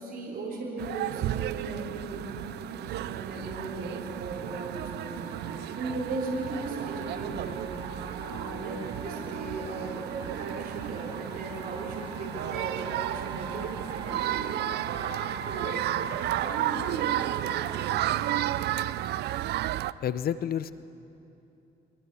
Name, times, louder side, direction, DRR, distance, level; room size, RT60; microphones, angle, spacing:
voice 1, 0.0-14.7 15.2-18.3, right 2 dB, 60° right, -2 dB, 4.2 m, -38 dB
sound 1, 0.8-19.9, right 14 dB, 80° right, 0.4 m, -33 dB
sound 2, 2.2-18.9, right 2 dB, 25° right, 5.0 m, -42 dB
voice 2, 20.0-20.7, left 9 dB, 65° left, 14 dB, 0.6 m, -29 dB
23.5 x 21.0 x 7.0 m, 2.8 s
cardioid pair, 90°, 17 cm